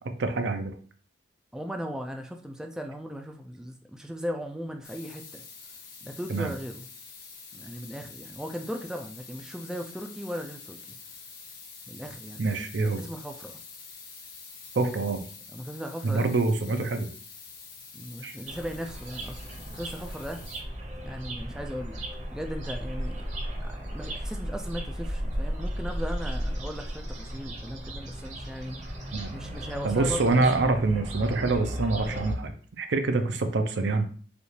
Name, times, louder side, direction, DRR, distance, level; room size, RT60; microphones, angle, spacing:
voice 1, 0.2-0.7 6.3-6.5 12.4-13.0 14.7-15.2 16.0-17.1 18.2-18.4 29.1-29.3 29.8-34.1, right 3 dB, 65° right, 7 dB, 0.5 m, -26 dB
voice 2, 1.5-5.4 6.0-6.9 7.5-10.8 11.9-12.5 13.0-13.6 15.5-16.3 17.9-19.4 19.7-20.4 21.0-22.0 22.3-23.2 23.6-28.8 29.3-30.8, equal, 5° right, 3 dB, 0.3 m, -37 dB
sound 1, 4.8-20.6, left 5 dB, 50° left, 1.2 m, -47 dB
sound 2, 18.5-32.3, equal, 40° right, 0.9 m, -35 dB
5.1 x 2.4 x 3.2 m, 0.43 s
head